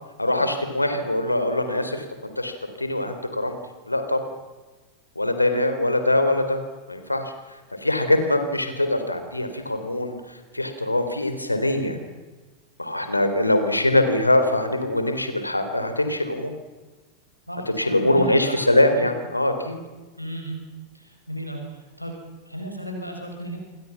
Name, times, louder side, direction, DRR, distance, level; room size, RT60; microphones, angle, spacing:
voice 1, 0.2-2.0 2.4-3.6 3.9-4.2 5.2-6.6 6.9-12.0 12.8-16.5 17.7-19.8, left 1 dB, 85° left, 8 dB, 3.9 m, -23 dB
voice 2, 17.5-18.6 19.0-19.1 20.2-20.6 20.9-22.1 22.4-23.6, equal, 90° right, 1 dB, 6.4 m, -35 dB
28.5 x 24.5 x 6.0 m, 1.2 s
figure-of-eight pair, 90°, 0 cm